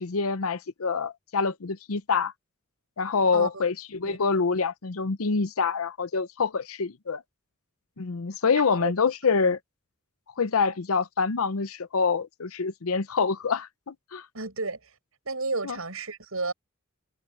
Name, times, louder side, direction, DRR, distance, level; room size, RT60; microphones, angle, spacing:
voice 1, 0.0-2.3 3.0-7.2 8.0-9.6 10.4-14.3 15.6-15.8, left 5 dB, 85° left, 0.7 m, -26 dB
voice 2, 3.3-3.6 4.0-4.2 8.6-8.9 14.3-14.9 15.3-16.5, right 3 dB, 80° right, 6.9 m, -32 dB
head